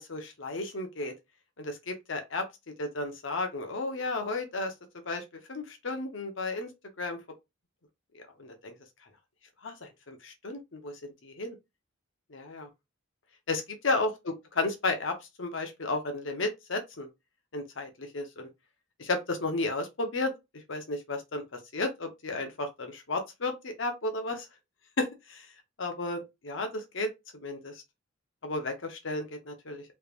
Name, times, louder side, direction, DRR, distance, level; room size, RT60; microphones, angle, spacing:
voice 1, 0.1-1.1 1.6-2.4 2.8-4.7 5.1-5.2 5.5-6.7 7.0-7.2 8.4-8.7 9.6-10.9 11.2-11.5 12.3-12.7 13.5-14.1 14.5-15.1 15.4-17.1 17.5-18.5 19.0-20.3 20.7-21.4 21.7-24.5 25.0-25.4 25.8-27.1 27.4-27.7 28.4-29.8, left 2 dB, 70° left, 0.9 m, -33 dB
3.4 x 3.2 x 2.4 m
head